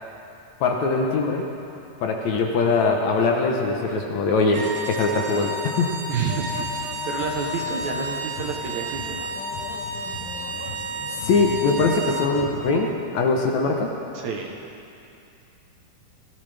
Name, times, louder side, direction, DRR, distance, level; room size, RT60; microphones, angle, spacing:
voice 1, 0.6-1.4 2.0-5.9 11.2-13.9, left 3 dB, 70° left, 1 dB, 2.0 m, -22 dB
sound 1, 4.5-12.4, right 1 dB, 90° right, 2.8 m, -32 dB
voice 2, 6.1-9.2 14.1-14.6, right 6 dB, 70° right, 1 dB, 2.0 m, -29 dB
sound 2, 6.3-12.7, left 6 dB, 90° left, 2.8 m, -38 dB
18.0 x 16.0 x 3.4 m, 2.7 s
omnidirectional pair, 3.9 m